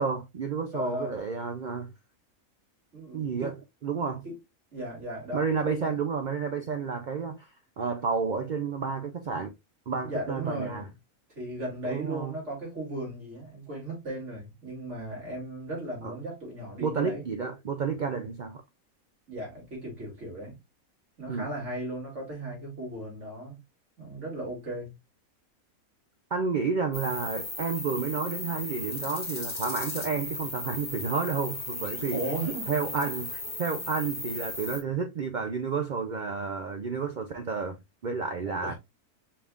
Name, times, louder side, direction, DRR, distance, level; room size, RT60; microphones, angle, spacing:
voice 1, 0.0-1.9 3.1-4.2 5.3-9.5 9.9-10.9 11.8-12.3 16.0-16.1 16.8-18.6 21.3-21.5 26.3-32.2 32.7-37.8 38.0-38.7, right 5 dB, 80° right, 0.4 m, -31 dB
voice 2, 0.7-1.1 2.9-3.5 4.2-4.3 4.7-6.0 10.0-10.9 11.3-17.3 19.3-20.6 21.2-23.6 24.0-25.0 32.1-32.7 38.6-38.8, right 1 dB, 55° right, 3.0 m, -36 dB
sound 1, 26.9-34.8, left 2 dB, 30° left, 1.7 m, -36 dB
4.9 x 3.5 x 2.4 m
omnidirectional pair, 1.5 m